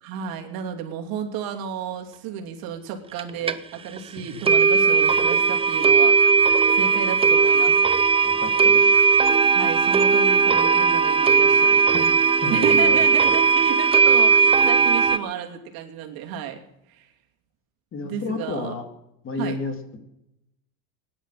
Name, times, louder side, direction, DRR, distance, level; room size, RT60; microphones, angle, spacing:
voice 1, 0.0-6.2 6.7-7.8 9.5-11.8 12.5-16.6 16.9-17.1 18.0-18.7 19.4-19.6, right 8 dB, 60° right, 3 dB, 2.8 m, -32 dB
sound 1, 3.2-3.3 3.5-3.6 4.0-4.1 4.5-15.2, right 5 dB, 15° right, 0.5 m, -18 dB
voice 2, 8.2-9.0 11.9-13.0 17.9-18.9 19.2-19.7, left 3 dB, 30° left, 6 dB, 2.5 m, -31 dB
18.5 x 10.0 x 7.5 m, 0.85 s
cardioid pair, 140°, 41 cm